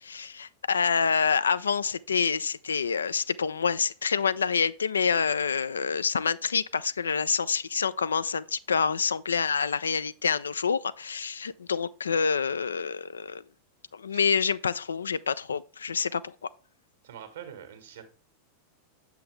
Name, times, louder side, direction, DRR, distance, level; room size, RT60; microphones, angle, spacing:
voice 1, 0.0-13.4 13.9-16.3, left 6 dB, 70° left, 0.3 m, -27 dB
voice 2, 17.0-18.0, right 9 dB, 60° right, 1.5 m, -44 dB
7.6 x 5.7 x 3.2 m
figure-of-eight pair, 90°, 0 cm